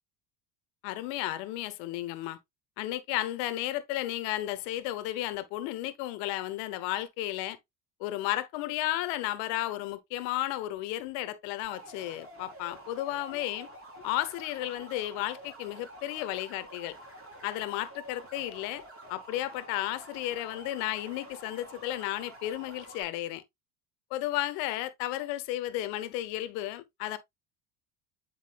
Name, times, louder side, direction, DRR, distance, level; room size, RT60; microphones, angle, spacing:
voice 1, 0.8-2.4 2.8-7.6 8.0-13.7 14.0-16.9 17.4-18.8 19.1-23.4 24.1-27.2, left 15 dB, 80° left, 1.1 m, -33 dB
sound 1, 11.6-23.0, right 1 dB, 25° right, 4.1 m, -49 dB
9.4 x 4.7 x 2.4 m
supercardioid pair, 85°, 49 cm